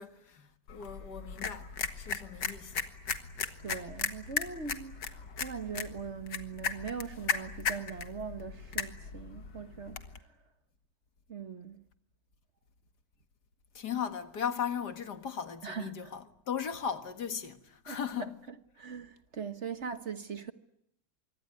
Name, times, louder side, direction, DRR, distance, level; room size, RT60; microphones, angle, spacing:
voice 1, 0.0-1.7 2.0-2.7 13.8-17.6 17.9-18.5, left 7 dB, 70° left, 2.3 m, -37 dB
sound 1, 0.7-10.2, left 6 dB, 90° left, 2.3 m, -37 dB
voice 2, 3.6-5.0 5.4-10.0 11.3-11.8 15.6-16.1 17.9-20.5, right 6 dB, 45° right, 1.4 m, -41 dB
25.0 x 24.0 x 9.6 m
omnidirectional pair, 1.8 m